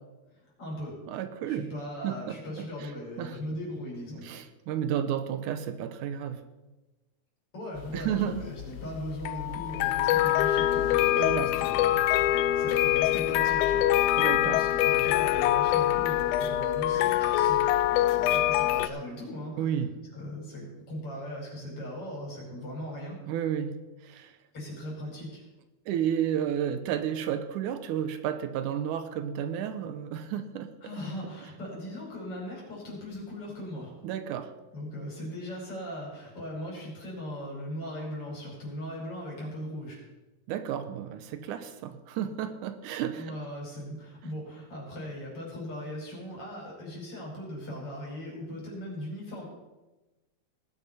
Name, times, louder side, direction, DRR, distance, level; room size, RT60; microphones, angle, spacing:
voice 1, 0.3-1.0 1.5-4.3 7.5-14.0 14.2-17.6 17.9-19.7 20.1-23.2 24.5-25.4 30.8-33.9 34.7-40.0 43.1-49.4, equal, 45° left, -4 dB, 5.7 m, -39 dB
voice 2, 1.1-1.7 2.0-2.4 2.8-2.9 3.2-3.4 4.2-6.4 7.9-8.5 11.2-11.6 14.2-14.6 19.6-20.0 23.3-24.4 25.9-30.7 34.0-34.5 40.5-43.4, right 9 dB, 80° right, 10 dB, 2.2 m, -32 dB
sound 1, 7.8-18.9, left 13 dB, 80° left, 2.0 m, -25 dB
19.5 x 9.4 x 4.2 m, 1.1 s
omnidirectional pair, 3.6 m